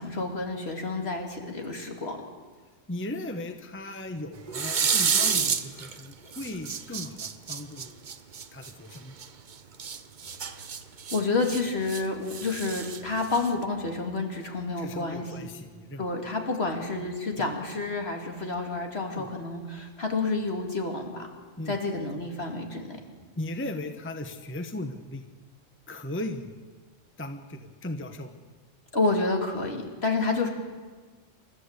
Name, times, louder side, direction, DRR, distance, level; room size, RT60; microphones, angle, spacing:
voice 1, 0.0-2.2 10.4-10.7 11.1-15.3 16.0-21.3 21.7-23.0 28.9-30.5, left 3 dB, 55° left, 2 dB, 2.8 m, -29 dB
voice 2, 2.9-8.1 8.5-9.2 14.8-16.1 19.2-19.3 21.6-21.8 23.4-25.3 25.9-26.5 27.2-28.4, left 1 dB, 10° left, 6 dB, 1.0 m, -37 dB
sound 1, 4.5-6.0 6.3-9.3 9.8-12.0 12.3-13.6, right 6 dB, 45° right, 0.9 m, -29 dB
28.5 x 13.0 x 8.2 m, 1.5 s
omnidirectional pair, 1.3 m